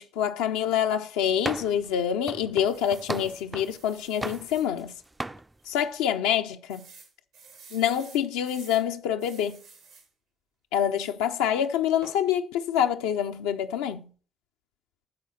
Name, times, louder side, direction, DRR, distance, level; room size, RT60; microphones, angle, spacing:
voice 1, 0.0-4.9 5.7-6.8 7.7-9.6 10.7-14.0, left 9 dB, 80° left, 0.4 m, -26 dB
sound 1, 1.4-1.9 2.3-3.8 4.2-4.9 5.2-5.4, right 2 dB, 15° right, 0.3 m, -35 dB
sound 2, 2.7-4.7 5.2-5.3 5.6-5.7 6.7-8.9 9.2-10.1 12.0-12.3, right 5 dB, 75° right, 1.7 m, -51 dB
8.5 x 4.1 x 6.1 m
hypercardioid pair, 45°, 0 cm